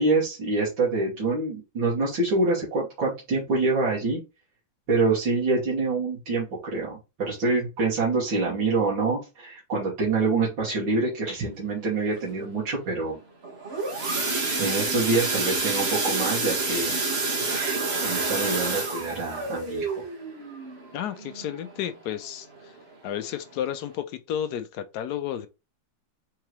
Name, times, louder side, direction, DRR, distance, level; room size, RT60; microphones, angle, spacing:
voice 1, 0.0-4.2 4.9-13.2 14.6-17.0 18.0-20.0, right 3 dB, 85° right, 2.4 m, -26 dB
sound 1, 13.4-22.1 22.5-22.8 23.1-23.2 23.7-23.8, right 3 dB, 35° right, 1.4 m, -28 dB
voice 2, 20.9-22.5 23.0-25.5, left 10 dB, 70° left, 1.0 m, -32 dB
4.7 x 3.7 x 3.0 m
omnidirectional pair, 2.1 m